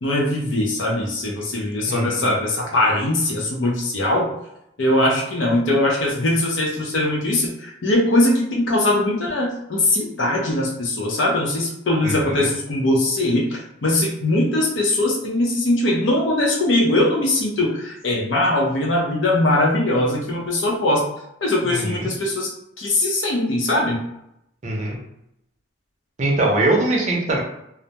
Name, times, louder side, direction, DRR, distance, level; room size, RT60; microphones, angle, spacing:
voice 1, 0.0-4.3 4.8-21.1 21.4-24.0, left 1 dB, 65° left, -1 dB, 0.6 m, -21 dB
voice 2, 1.9-2.3 12.0-12.5 21.6-22.1 24.6-25.0 26.2-27.4, right 2 dB, 40° right, -2 dB, 0.6 m, -22 dB
2.2 x 2.1 x 2.8 m, 0.79 s
head